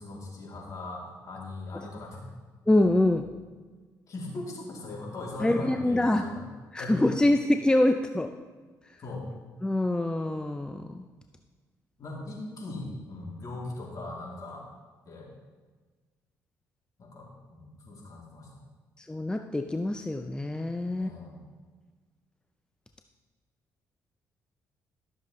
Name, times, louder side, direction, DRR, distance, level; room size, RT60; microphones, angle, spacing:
voice 1, 0.0-2.2 4.1-6.3 6.8-7.1 9.0-9.3 12.0-14.7 15.0-15.3 17.0-18.7 20.9-21.4, left 2 dB, 50° left, -3 dB, 3.0 m, -39 dB
voice 2, 2.7-3.3 5.4-6.2 6.7-8.3 9.6-11.0 19.0-21.1, left 1 dB, 10° left, 6 dB, 0.5 m, -25 dB
13.0 x 7.0 x 3.2 m, 1.3 s
supercardioid pair, 60°, 7 cm